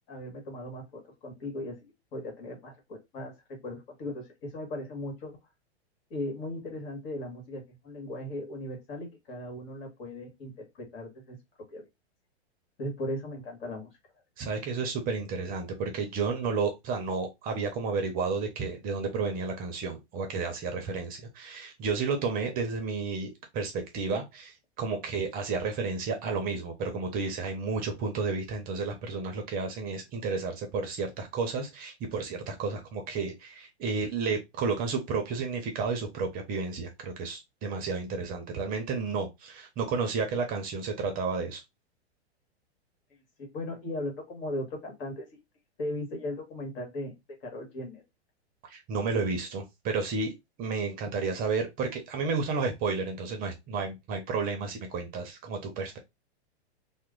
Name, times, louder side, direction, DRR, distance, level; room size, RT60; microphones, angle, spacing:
voice 1, 0.1-5.4 6.1-11.4 11.7-11.9 12.8-13.9 43.4-45.4 45.8-47.1 47.4-48.0, left 1 dB, 55° left, 1.6 m, -38 dB
voice 2, 14.4-41.6 48.6-56.0, right 4 dB, 25° right, 0.6 m, -32 dB
3.0 x 2.1 x 3.6 m
hypercardioid pair, 135°, 33 cm